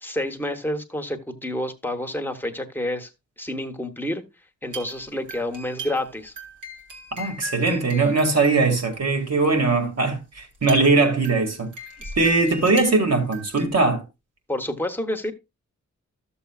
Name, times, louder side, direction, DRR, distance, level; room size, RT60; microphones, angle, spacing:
voice 1, 0.0-3.1 3.4-4.2 4.6-6.3 12.0-12.1 14.5-15.3, left 1 dB, 5° left, 0.9 m, -29 dB
sound 1, 4.7-9.6 10.1-10.2 10.3-13.6, right 2 dB, 80° right, 2.2 m, -40 dB
voice 2, 7.2-11.7 12.2-14.0, right 3 dB, 55° right, 2.1 m, -20 dB
13.5 x 6.9 x 2.3 m
wide cardioid pair, 150°, 30 cm